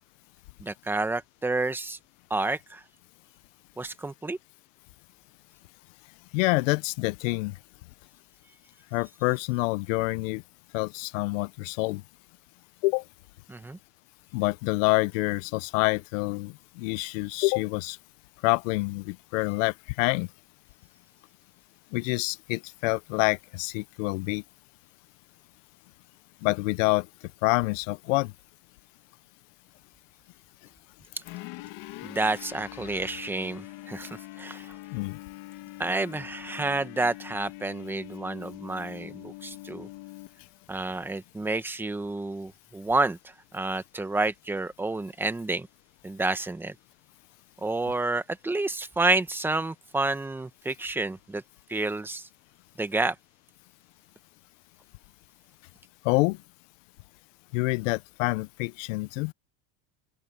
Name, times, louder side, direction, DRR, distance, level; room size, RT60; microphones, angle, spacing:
voice 1, 0.6-2.0 2.3-2.8 3.8-4.4 13.5-13.8 32.0-34.7 35.8-39.9 40.7-43.2 43.5-45.7 46.0-46.7 47.6-51.4 51.7-52.3 52.8-53.1, right 2 dB, 5° right, 0.9 m, -29 dB
voice 2, 6.3-7.6 8.9-10.4 10.7-12.0 12.8-13.0 14.3-18.0 18.4-20.3 21.9-24.4 26.4-27.1 27.4-28.3 34.9-35.2 56.0-56.4 57.5-59.3, left 24 dB, 85° left, 0.7 m, -27 dB
sound 1, 31.2-40.7, left 19 dB, 60° left, 2.1 m, -43 dB
cardioid pair, 160°, 37 cm